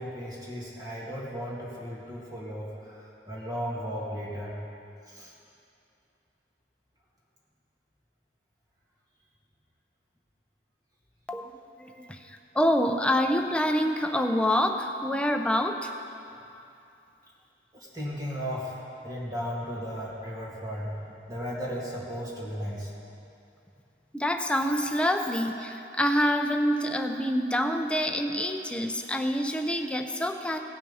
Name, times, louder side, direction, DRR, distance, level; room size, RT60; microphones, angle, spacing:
voice 1, 0.0-4.6 5.1-5.3 17.7-18.8 19.0-20.9 21.3-22.9, equal, 20° right, -6 dB, 2.3 m, -35 dB
voice 2, 12.5-15.9 24.1-30.6, equal, 5° left, 4 dB, 0.6 m, -26 dB
17.0 x 6.0 x 5.6 m, 2.7 s
head